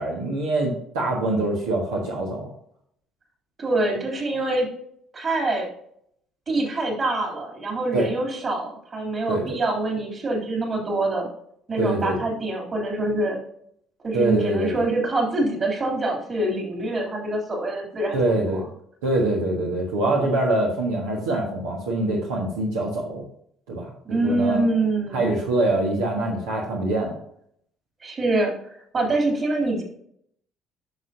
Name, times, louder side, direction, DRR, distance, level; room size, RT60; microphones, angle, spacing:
voice 1, 0.0-2.5 7.9-8.1 9.3-9.6 11.8-12.2 14.1-14.9 18.1-18.6 19.0-23.2 23.7-23.9 24.2-24.6 25.1-27.1, right 2 dB, 75° right, -2 dB, 1.4 m, -24 dB
voice 2, 3.6-4.7 5.1-5.7 6.5-11.3 11.7-13.4 14.0-18.4 24.1-25.3 28.0-29.8, right 2 dB, 35° right, 0 dB, 3.2 m, -25 dB
10.5 x 6.3 x 2.8 m, 0.67 s
figure-of-eight pair, 50°, 0 cm